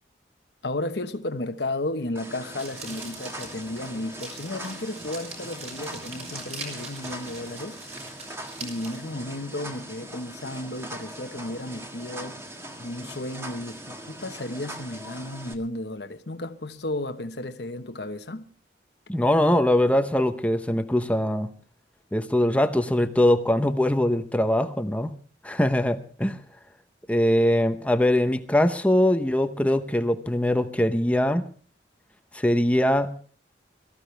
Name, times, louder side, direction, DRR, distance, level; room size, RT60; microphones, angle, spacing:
voice 1, 0.6-8.2 8.6-18.5, left 1 dB, 65° left, 1.2 m, -34 dB
sound 1, 2.2-15.5, right 1 dB, 15° right, 1.7 m, -41 dB
sound 2, 2.6-9.0, right 3 dB, 35° right, 4.8 m, -42 dB
voice 2, 19.1-21.5 22.1-25.1 25.4-26.4 27.1-31.5 32.3-33.2, left 1 dB, 10° left, 0.9 m, -22 dB
23.5 x 14.5 x 3.4 m
head